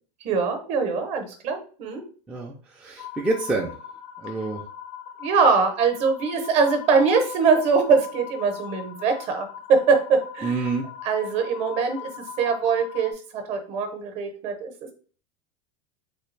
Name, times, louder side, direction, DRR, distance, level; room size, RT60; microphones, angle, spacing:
voice 1, 0.2-2.0 5.2-10.5 11.0-12.1 12.4-14.7, right 5 dB, 40° right, 6 dB, 0.7 m, -22 dB
voice 2, 2.3-3.8 4.2-4.6 10.4-10.8, right 3 dB, 5° right, -1 dB, 0.3 m, -27 dB
sound 1, 3.0-13.1, left 9 dB, 55° left, 0.4 m, -40 dB
3.3 x 2.3 x 3.1 m, 0.40 s
supercardioid pair, 145°, 17 cm